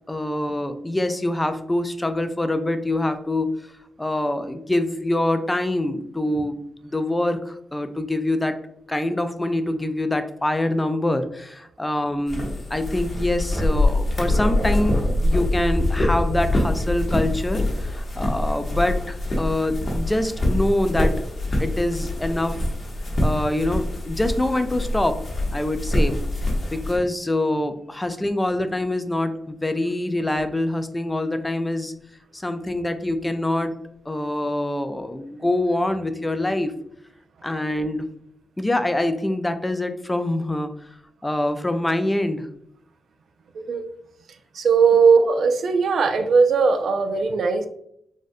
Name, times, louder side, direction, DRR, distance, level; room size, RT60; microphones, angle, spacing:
voice 1, 0.1-3.5 4.0-8.6 8.9-21.2 21.6-22.6 23.2-25.2 25.5-26.2 26.7-31.9 32.3-33.8 34.1-36.7 37.4-38.0 38.6-40.7 41.2-42.5, left 1 dB, 15° left, 9 dB, 0.3 m, -25 dB
sound 1, 12.3-27.0, left 1 dB, 40° left, 0.8 m, -24 dB
voice 2, 43.5-43.9 44.5-47.7, right 5 dB, 70° right, 7 dB, 0.3 m, -18 dB
3.6 x 2.1 x 2.6 m, 0.73 s
cardioid pair, 95°, 0 cm